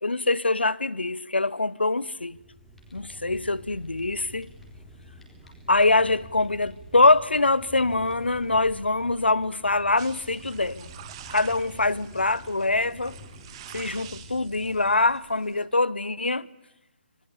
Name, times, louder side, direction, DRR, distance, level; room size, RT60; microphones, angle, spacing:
voice 1, 0.0-2.4 2.9-4.5 5.7-10.9 11.3-13.2 13.7-16.5, left 2 dB, 80° left, 0.9 m, -24 dB
Fire, 2.2-15.7, left 1 dB, 5° left, 4.2 m, -47 dB
sound 1, 10.0-15.6, right 11 dB, 30° right, 2.0 m, -47 dB
26.0 x 22.0 x 8.5 m
figure-of-eight pair, 140°, 6 cm